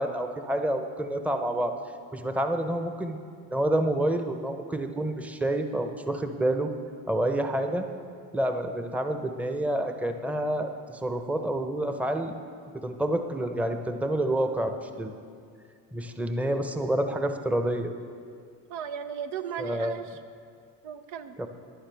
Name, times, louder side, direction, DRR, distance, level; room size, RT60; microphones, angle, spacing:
voice 1, 0.0-1.7 2.1-3.2 3.5-6.7 7.1-7.9 8.3-12.3 12.8-15.1 15.9-17.9 19.6-19.9 21.4-21.5, right 1 dB, 5° right, 7 dB, 0.8 m, -28 dB
voice 2, 18.7-20.2 20.8-21.4, right 8 dB, 60° right, 8 dB, 0.8 m, -36 dB
15.5 x 11.0 x 3.5 m, 2.2 s
hypercardioid pair, 65°, 49 cm